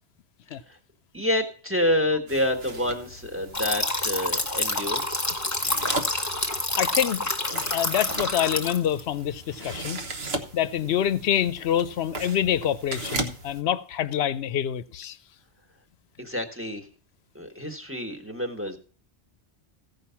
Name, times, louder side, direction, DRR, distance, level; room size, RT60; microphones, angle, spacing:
voice 1, 1.1-5.0 16.2-16.9 17.3-18.8, left 1 dB, 10° right, 1.4 m, -28 dB
sound 1, 2.3-13.6, right 2 dB, 65° right, 1.5 m, -38 dB
sound 2, 3.5-9.0, left 2 dB, 15° left, 1.1 m, -28 dB
voice 2, 6.8-7.2 7.5-10.0 10.5-15.2, left 10 dB, 70° left, 0.9 m, -26 dB
15.5 x 5.4 x 5.8 m
omnidirectional pair, 1.1 m